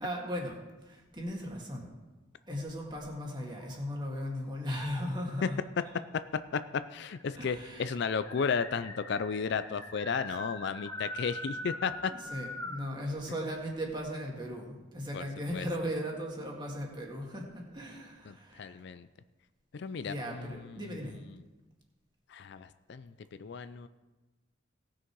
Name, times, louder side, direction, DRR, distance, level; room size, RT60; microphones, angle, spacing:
voice 1, 0.0-1.9 2.5-5.6 7.4-8.0 11.5-11.6 12.1-18.8 20.0-21.2, equal, 20° right, -1 dB, 2.0 m, -37 dB
sound 1, 2.7-4.2 4.7-5.4 6.4-6.5 6.7-6.8 7.1-12.9, left 1 dB, 15° left, 1.2 m, -43 dB
voice 2, 6.9-12.1 15.1-15.2 15.5-15.7 18.3-19.1 19.7-20.8 22.3-23.1 23.4-23.9, left 6 dB, 55° left, 13 dB, 0.4 m, -34 dB
18.0 x 6.4 x 4.6 m, 1.2 s
head